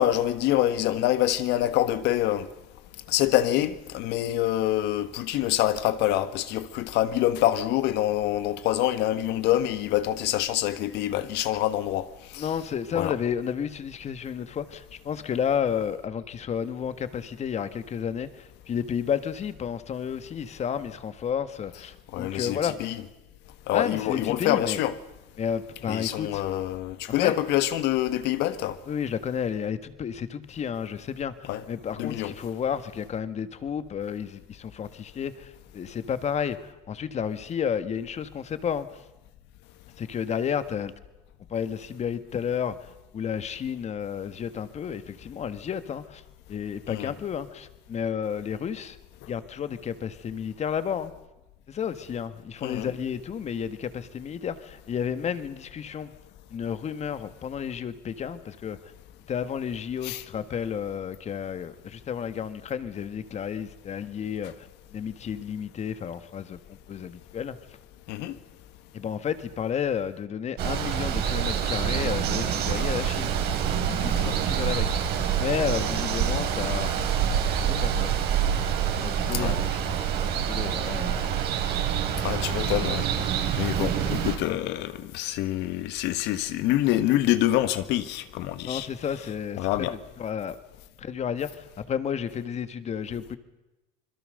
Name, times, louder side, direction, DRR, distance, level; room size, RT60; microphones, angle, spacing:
voice 1, 0.0-2.5 3.1-12.1 12.3-12.5 12.9-13.1 22.1-22.9 23.7-24.9 25.9-28.8 31.5-31.6 32.0-32.3 46.9-47.1 52.6-52.9 60.0-60.2 68.1-68.3 79.3-79.6 82.2-83.3 83.6-88.9 89.6-89.9, left 13 dB, 65° left, 1.5 m, -26 dB
voice 2, 12.4-23.0 23.7-24.8 25.4-26.4 27.2-27.4 28.9-39.0 40.0-40.9 41.5-46.2 46.5-49.0 49.3-51.1 51.7-56.1 56.5-58.8 59.3-67.6 68.9-73.3 73.8-75.0 75.4-76.9 77.6-78.1 78.6-78.7 79.0-81.3 88.7-90.6 91.0-93.4, left 8 dB, 35° left, 1.8 m, -32 dB
Water, 70.6-84.4, right 8 dB, 60° right, 4.1 m, -26 dB
26.0 x 22.0 x 6.7 m
supercardioid pair, 105°, 19 cm